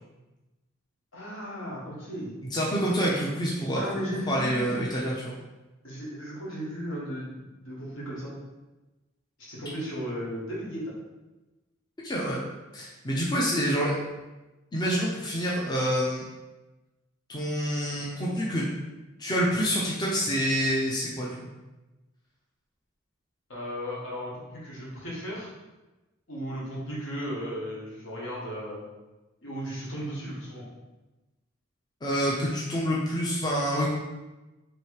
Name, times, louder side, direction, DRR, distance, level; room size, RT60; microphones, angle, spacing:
voice 1, 1.1-2.3 3.7-4.7 5.8-8.3 9.4-10.9 23.5-25.5 26.3-28.8 29.4-30.6, equal, 70° left, -6 dB, 1.4 m, -35 dB
voice 2, 2.5-3.8 4.3-5.4 12.0-12.4 12.7-14.0 14.7-16.2 17.3-18.7 19.2-21.4 32.0-33.9, equal, 20° left, -5 dB, 0.5 m, -27 dB
3.2 x 3.0 x 4.7 m, 1.1 s
head